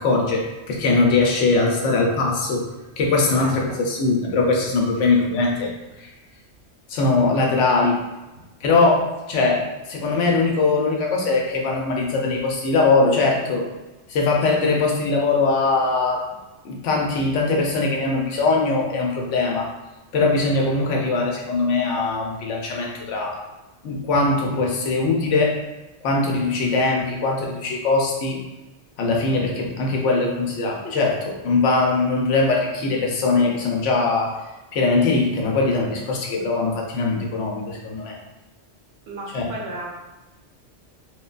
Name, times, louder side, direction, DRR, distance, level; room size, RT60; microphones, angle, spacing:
voice 1, 0.0-2.6 3.0-5.7 6.9-8.0 8.6-9.6 9.9-13.7 14.1-16.2 16.6-19.7 20.1-23.4 23.8-25.5 26.0-28.4 29.0-34.4 34.7-38.2 39.3-39.5, left 3 dB, 80° left, -1 dB, 0.9 m, -21 dB
voice 2, 3.4-3.8 5.0-5.1 39.1-39.9, right 2 dB, 65° right, -2 dB, 0.8 m, -34 dB
3.0 x 2.2 x 2.3 m, 1.1 s
omnidirectional pair, 1.2 m